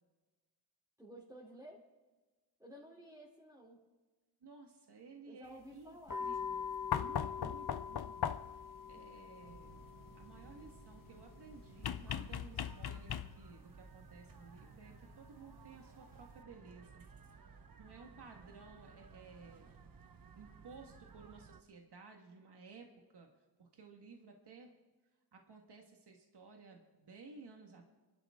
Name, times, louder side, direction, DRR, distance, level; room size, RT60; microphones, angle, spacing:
voice 1, 1.0-1.8 2.6-3.8 5.2-6.3, right 1 dB, 10° right, -6 dB, 3.1 m, -54 dB
voice 2, 4.4-9.8 10.1-17.1 17.8-19.7 20.3-22.9 23.1-23.3 23.6-24.7 25.3-27.8, right 4 dB, 80° right, 2 dB, 1.7 m, -56 dB
sound 1, 6.1-13.1, left 6 dB, 55° left, 1.5 m, -45 dB
sound 2, 6.9-8.7 11.8-13.6 15.1-15.2, left 9 dB, 70° left, 0.7 m, -38 dB
sound 3, 9.4-21.6, right 5 dB, 60° right, 1.2 m, -57 dB
27.5 x 12.0 x 3.6 m, 1.2 s
wide cardioid pair, 70°, 39 cm